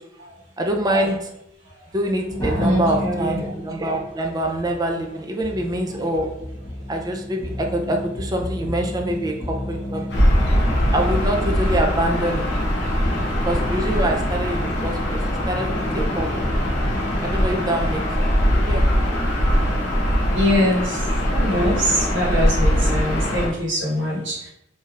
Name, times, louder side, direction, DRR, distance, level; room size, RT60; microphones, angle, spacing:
voice 1, 0.6-1.3 1.9-6.3 6.9-10.3 10.9-12.5 13.5-15.2 15.5-16.4 17.2-19.2, right 1 dB, 20° right, 2 dB, 0.4 m, -25 dB
sound 1, 2.3-17.5, left 1 dB, 15° left, 1.0 m, -32 dB
voice 2, 2.6-3.4 20.3-21.0 21.3-24.5, equal, 85° right, -5 dB, 1.1 m, -23 dB
Gull seagull / Ocean, 10.1-23.5, equal, 65° left, 0.8 m, -21 dB
3.4 x 2.7 x 2.3 m, 0.79 s
head